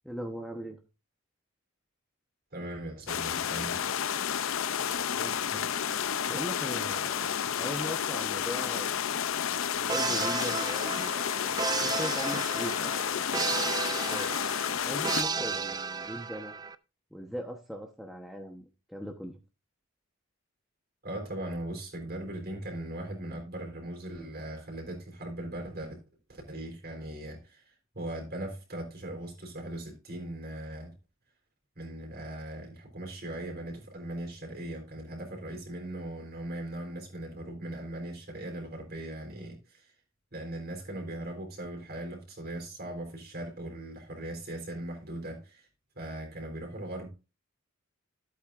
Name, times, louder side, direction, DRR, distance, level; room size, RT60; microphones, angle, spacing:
voice 1, 0.0-0.8 5.1-5.6 6.3-7.3 7.6-8.9 9.7-11.2 11.7-12.9 14.1-14.3 14.8-16.5 17.1-19.3, equal, ahead, 1.0 m, -39 dB
voice 2, 2.5-3.8 21.0-26.0 26.3-30.9 31.8-39.9 40.3-45.7 46.0-47.1, right 1 dB, 50° right, 3.9 m, -39 dB
sound 1, 3.1-15.2, left 8 dB, 75° left, 0.6 m, -31 dB
sound 2, 9.9-16.8, right 5 dB, 20° right, 0.4 m, -33 dB
14.0 x 8.4 x 2.5 m
head